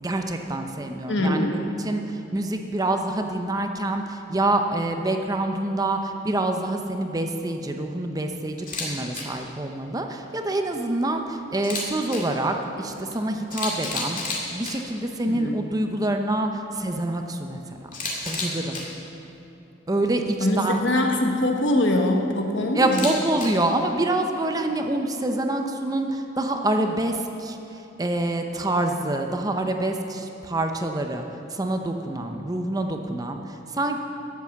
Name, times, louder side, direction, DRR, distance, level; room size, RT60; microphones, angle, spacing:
voice 1, 0.0-2.0 2.3-17.9 18.2-18.8 19.9-20.8 22.7-27.6 28.0-31.3 31.5-34.0, right 2 dB, 20° right, 4 dB, 0.7 m, -26 dB
voice 2, 1.1-1.7 15.2-15.6 20.4-23.1, left 1 dB, 70° left, 2 dB, 1.3 m, -23 dB
Camera, 8.6-8.9 9.1-9.2 11.5-12.2 13.1-13.2 13.5-14.7 17.9-18.8 22.8-23.5, left 3 dB, 45° left, 2.2 m, -30 dB
12.0 x 8.3 x 7.2 m, 2.9 s
head